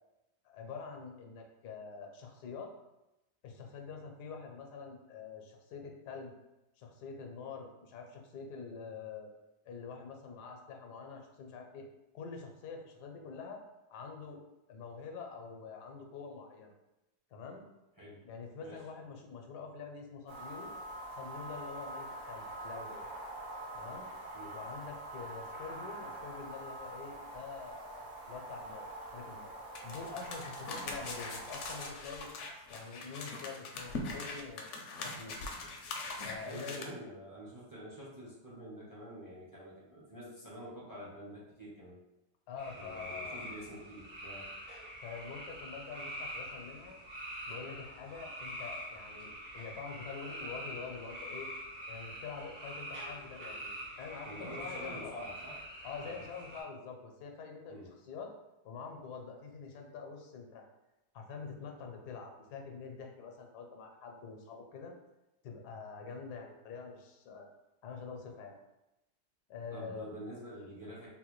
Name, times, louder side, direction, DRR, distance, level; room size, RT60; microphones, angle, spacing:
voice 1, 0.4-2.7 3.4-6.3 6.8-9.3 9.7-11.9 12.1-13.6 13.9-14.4 14.7-16.7 17.3-17.6 18.2-20.7 21.1-23.1 23.7-24.1 24.5-29.5 29.8-32.3 32.7-35.4 36.2-37.0 42.5-43.4 45.0-47.0 47.5-51.5 51.9-55.2 55.8-58.3 58.6-60.6 61.1-65.0 65.4-67.5 67.8-68.6 69.5-70.1, left 5 dB, 85° left, 2 dB, 1.2 m, -46 dB
sound 1, 20.3-31.9, right 1 dB, 60° right, 0.9 m, -45 dB
sound 2, 29.7-36.8, left 3 dB, 70° left, 0.7 m, -42 dB
voice 2, 36.4-42.0 42.7-44.5 54.2-55.6 56.0-56.2 57.7-57.9 69.7-71.1, equal, 30° right, -7 dB, 0.3 m, -47 dB
sound 3, 42.6-56.6, equal, 75° right, 2.0 m, -45 dB
3.8 x 2.2 x 3.0 m, 0.94 s
omnidirectional pair, 1.7 m